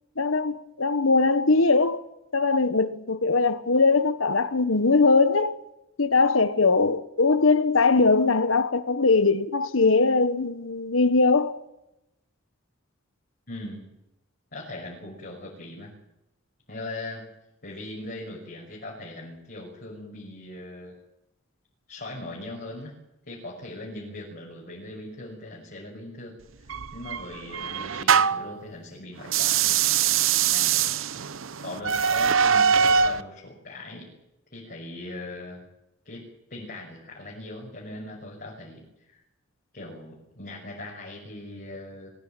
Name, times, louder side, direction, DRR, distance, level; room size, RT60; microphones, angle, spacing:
voice 1, 0.2-2.0 2.3-5.6 6.0-11.6, left 3 dB, 80° left, 1.3 m, -21 dB
voice 2, 13.5-13.9 14.5-15.9 16.7-17.2 17.6-20.9 21.9-22.9 23.2-26.3 26.9-29.8 30.5-30.9 31.6-34.1 34.5-35.6 36.0-36.2 36.5-38.8 39.1-39.2 39.7-42.1, left 2 dB, 50° left, 6.2 m, -39 dB
sound 1, 26.7-28.5 29.2-33.2, right 7 dB, 80° right, 0.8 m, -23 dB
23.5 x 16.0 x 9.1 m
head